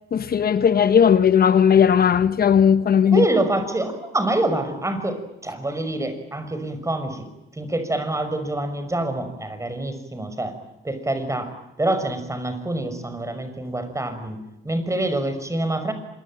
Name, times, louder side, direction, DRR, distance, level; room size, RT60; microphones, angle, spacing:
voice 1, 0.1-3.2, left 8 dB, 50° left, 1.1 m, -17 dB
voice 2, 3.1-7.3 7.5-10.5 10.8-11.5 11.8-15.9, right 2 dB, 15° right, 6.0 m, -26 dB
26.5 x 22.0 x 9.0 m
cardioid pair, 90°, 20 cm